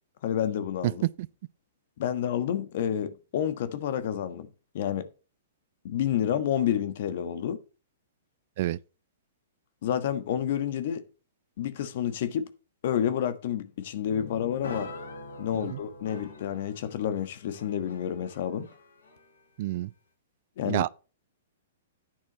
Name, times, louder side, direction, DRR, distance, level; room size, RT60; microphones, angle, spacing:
voice 1, 0.2-1.0 2.0-4.5 4.7-5.1 5.8-7.6 9.8-11.0 11.6-12.5 12.8-14.9 15.4-18.7 20.6-20.8, left 9 dB, 60° left, 1.4 m, -29 dB
sound 1, 14.1-19.4, left 2 dB, 85° left, 4.8 m, -44 dB
voice 2, 19.6-19.9 20.7-20.9, right 16 dB, 55° right, 0.4 m, -27 dB
10.5 x 9.7 x 3.1 m
hypercardioid pair, 125°, 0 cm